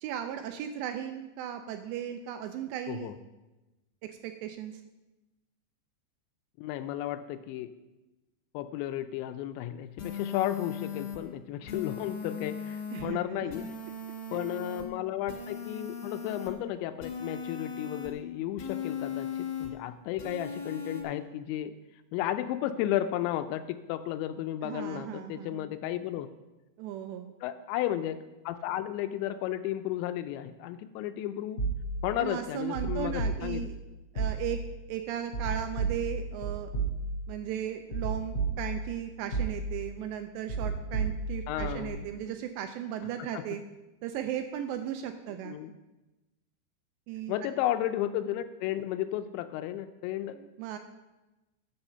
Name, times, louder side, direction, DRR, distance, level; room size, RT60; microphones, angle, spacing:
voice 1, 0.0-3.1 4.0-4.8 12.9-13.5 14.4-14.5 24.6-25.7 26.8-27.3 32.2-33.8 34.1-34.6 34.9-36.7 37.3-43.6 44.0-45.6 47.1-47.4 50.3-50.8, right 10 dB, 85° right, 7 dB, 2.6 m, -36 dB
voice 2, 6.6-7.7 8.5-13.7 14.3-21.7 22.1-26.3 27.4-28.2 28.5-31.6 32.0-33.7 41.5-42.1 43.3-43.4 45.5-45.7 47.3-50.4, left 12 dB, 85° left, 10 dB, 2.7 m, -33 dB
sound 1, 10.0-11.2 11.7-13.0 13.5-14.8 15.3-16.5 17.0-18.1 18.6-19.7 20.2-21.0, left 6 dB, 50° left, 2.5 m, -38 dB
sound 2, 31.6-32.2 32.7-33.8 34.2-34.8 35.3-37.4 37.9-39.0 39.3-39.9 40.5-41.9, right 3 dB, 20° left, 2.6 m, -33 dB
8.7 x 7.1 x 6.7 m, 1.1 s
omnidirectional pair, 5.4 m